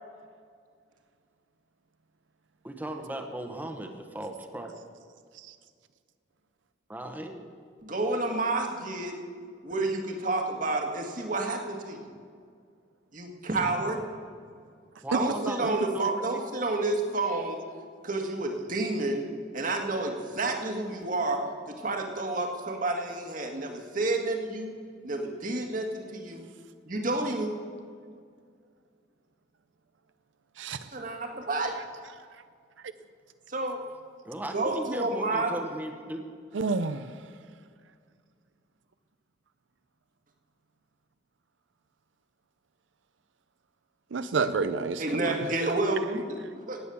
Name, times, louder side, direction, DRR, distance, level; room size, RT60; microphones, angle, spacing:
voice 1, 2.6-4.7 6.9-7.4 15.0-16.4 31.0-31.1 34.2-36.3, right 1 dB, 10° right, 4 dB, 1.2 m, -37 dB
voice 2, 7.8-9.2 9.6-12.2 13.1-14.0 15.1-17.6 18.0-19.2 19.5-21.4 21.7-24.7 25.0-26.5 26.8-27.5 30.9-31.7 33.5-33.8 34.5-35.5 45.0-46.8, right 2 dB, 45° right, 3 dB, 2.0 m, -30 dB
voice 3, 36.5-37.1 44.1-45.4, right 4 dB, 90° right, 12 dB, 0.6 m, -29 dB
16.5 x 9.4 x 7.1 m, 2.1 s
head